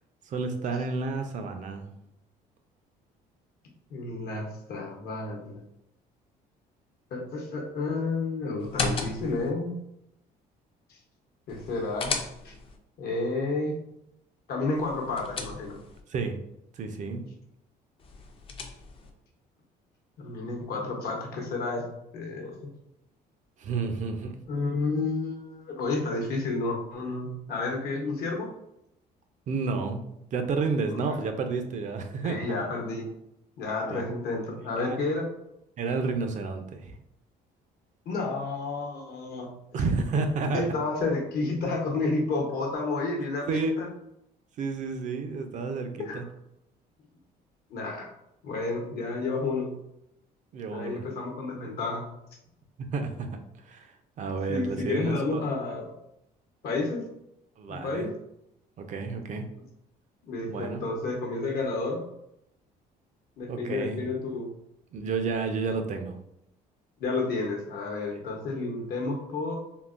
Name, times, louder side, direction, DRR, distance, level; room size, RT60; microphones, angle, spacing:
voice 1, 0.3-1.9 16.1-16.4 16.8-17.2 23.6-24.4 29.5-30.0 30.3-32.4 33.9-34.0 34.8-35.0 35.8-37.0 39.7-40.6 43.5-43.7 44.6-46.2 50.5-51.0 52.9-53.3 53.7-53.9 54.2-55.5 57.6-58.1 58.8-59.5 60.5-60.8 63.5-64.0 64.9-66.2, right 4 dB, 45° right, 6 dB, 0.5 m, -30 dB
voice 2, 3.9-5.6 7.1-9.7 11.5-12.1 12.4-12.5 13.0-13.8 14.5-15.8 20.2-21.8 22.1-22.6 24.5-28.5 30.9-31.2 32.2-33.1 33.6-35.3 38.1-39.5 40.5-43.9 46.0-46.2 47.7-48.1 48.4-49.7 50.7-52.0 54.5-55.9 56.6-57.0 57.7-58.1 60.2-62.0 63.4-64.5 67.0-69.6, left 3 dB, 65° left, 1 dB, 0.9 m, -31 dB
sound 1, 8.6-9.5 11.5-12.8 14.7-16.0 18.0-19.1, left 4 dB, 35° left, 0.4 m, -35 dB
3.7 x 2.1 x 2.4 m, 0.80 s
cardioid pair, 110°, 17 cm